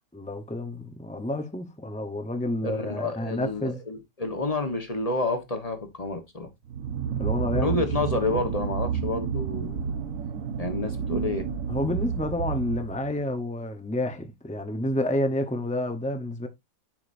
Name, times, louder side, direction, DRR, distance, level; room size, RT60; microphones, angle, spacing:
voice 1, 0.1-3.8 7.2-7.8 11.7-16.5, left 1 dB, 10° left, 0.4 m, -29 dB
voice 2, 2.6-6.5 7.5-9.8 10.6-11.5, left 2 dB, 25° left, 1.1 m, -29 dB
sound 1, 6.7-13.2, right 7 dB, 55° right, 1.2 m, -30 dB
10.5 x 5.0 x 2.6 m
omnidirectional pair, 1.8 m